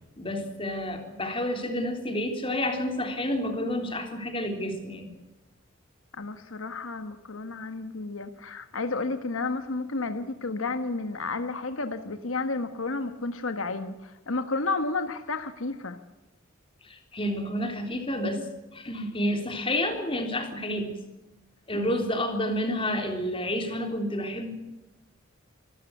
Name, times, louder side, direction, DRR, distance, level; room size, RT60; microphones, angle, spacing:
voice 1, 0.2-5.1 16.8-18.5 18.7-21.0 21.7-24.5, left 1 dB, 25° left, 5 dB, 3.7 m, -29 dB
voice 2, 6.1-16.0 21.7-22.1, left 3 dB, 85° left, 9 dB, 1.5 m, -32 dB
26.0 x 13.5 x 8.1 m, 1.1 s
head